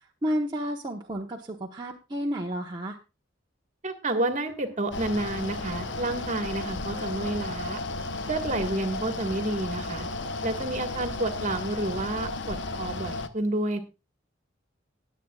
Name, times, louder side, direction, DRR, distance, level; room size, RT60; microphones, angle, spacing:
voice 1, 0.2-3.0, equal, 25° right, -1 dB, 1.1 m, -31 dB
voice 2, 3.8-7.8 8.3-10.1 10.4-13.8, right 2 dB, 40° right, 6 dB, 1.7 m, -30 dB
sound 1, 4.2-5.5 5.9-6.0 6.8-11.1, equal, 15° left, 3.8 m, -52 dB
Mechanical fan, 4.9-13.3, left 2 dB, 65° left, 0.9 m, -34 dB
20.5 x 8.5 x 2.4 m, 0.27 s
head